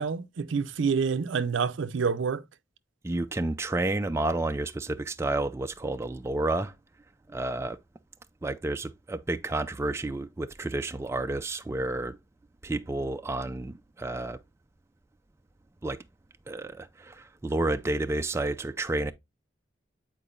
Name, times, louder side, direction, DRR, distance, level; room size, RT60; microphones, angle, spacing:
voice 1, 0.0-2.4, right 5 dB, 85° right, 0.5 m, -27 dB
voice 2, 3.0-6.7 7.3-7.8 8.4-12.2 12.6-14.4 15.8-16.0 16.5-19.1, right 2 dB, 15° right, 0.3 m, -30 dB
8.6 x 4.5 x 2.4 m
head